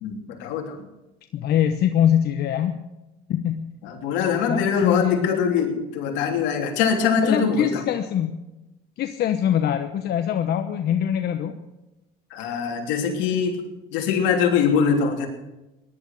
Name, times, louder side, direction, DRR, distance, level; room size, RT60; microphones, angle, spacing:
voice 1, 0.0-0.9 3.8-7.8 12.3-13.6 13.9-15.3, left 6 dB, 80° left, 3 dB, 3.2 m, -23 dB
voice 2, 1.3-2.8 3.3-3.7 4.2-5.6 7.2-8.4 9.0-11.6, left 10 dB, 60° left, 7 dB, 1.1 m, -23 dB
18.0 x 11.5 x 6.5 m, 1.0 s
supercardioid pair, 90°, 19 cm